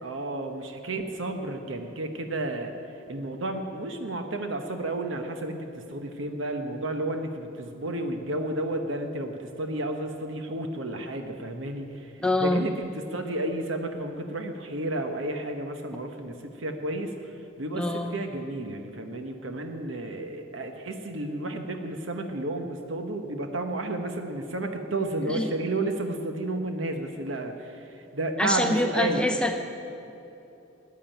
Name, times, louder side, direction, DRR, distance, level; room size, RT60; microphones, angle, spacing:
voice 1, 0.0-29.2, right 2 dB, 90° right, 5 dB, 1.1 m, -32 dB
voice 2, 12.2-12.6 17.8-18.1 25.3-25.5 28.4-29.6, left 1 dB, 5° left, 4 dB, 0.6 m, -25 dB
14.5 x 10.5 x 9.0 m, 3.0 s
head